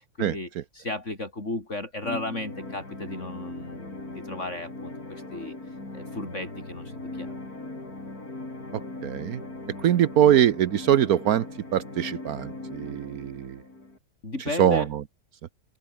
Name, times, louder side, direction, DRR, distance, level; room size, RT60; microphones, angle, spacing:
voice 1, 0.0-7.4 14.2-14.9, left 2 dB, 45° left, 5.8 m, -35 dB
sound 1, 2.0-14.0, left 2 dB, 70° left, 6.9 m, -39 dB
voice 2, 9.0-9.4 9.8-11.4 11.7-13.5 14.6-14.8, right 10 dB, 70° right, 1.3 m, -22 dB
open air
omnidirectional pair, 1.7 m